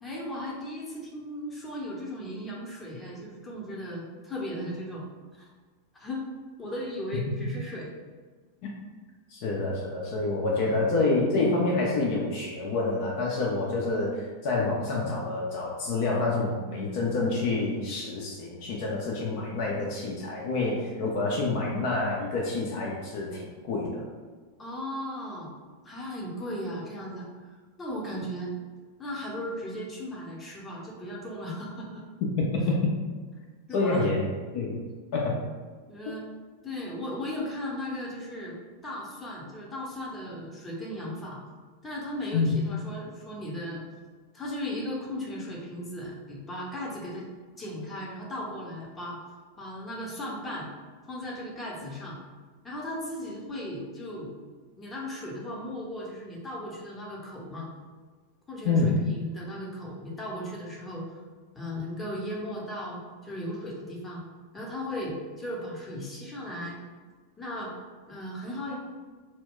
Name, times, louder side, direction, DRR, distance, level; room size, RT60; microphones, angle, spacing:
voice 1, 0.0-5.0 5.4-5.5 6.0-6.2 6.6-7.9 10.5-10.8 24.6-25.5 25.8-28.5 29.0-32.0 33.7-34.1 35.9-36.3 36.6-38.6 38.8-41.4 41.8-43.8 44.3-47.3 47.6-49.2 49.6-50.7 51.1-52.2 52.6-54.3 54.8-57.7 58.5-61.2 61.5-64.2 64.5-66.8 67.4-67.8 68.1-68.8, left 1 dB, 15° left, -4 dB, 0.7 m, -36 dB
voice 2, 9.3-24.1 32.2-32.9 33.7-34.3 34.5-34.8 35.1-35.4 42.3-42.5 58.6-59.1, left 3 dB, 45° left, -2 dB, 0.4 m, -27 dB
2.2 x 2.0 x 3.7 m, 1.4 s
figure-of-eight pair, 90°, 0 cm